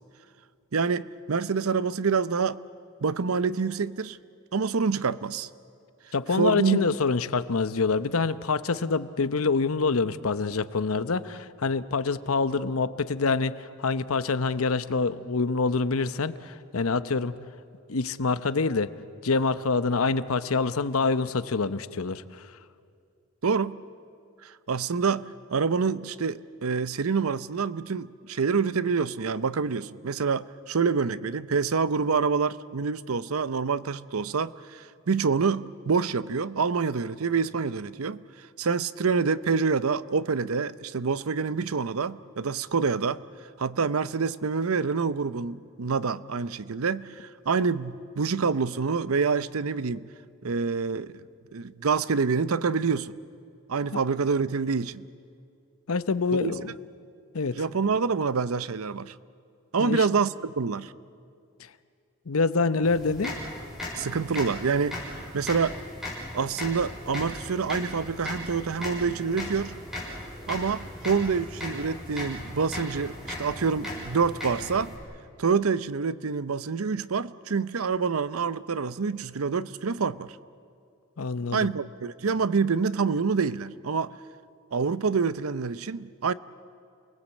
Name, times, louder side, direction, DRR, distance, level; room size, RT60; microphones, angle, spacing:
voice 1, 0.7-2.6 3.0-4.2 4.5-5.5 6.4-6.9 23.4-23.8 24.4-25.3 25.5-38.2 38.6-43.2 43.6-50.1 50.4-51.2 51.5-53.1 53.7-55.0 56.4-56.5 57.6-59.1 59.7-60.9 64.0-65.0 65.3-65.8 66.3-69.7 70.5-74.9 75.4-80.4 81.5-84.1 84.7-86.3, right 5 dB, 90° right, 16 dB, 0.7 m, -27 dB
voice 2, 6.1-17.3 17.9-18.9 19.2-22.5 53.9-54.0 55.9-56.7 57.3-57.6 59.8-60.1 62.3-63.4 81.2-81.7, left 4 dB, 90° left, 13 dB, 0.8 m, -26 dB
sound 1, 62.8-75.0, left 1 dB, ahead, 6.7 m, -37 dB
28.5 x 20.0 x 8.4 m, 2.4 s
head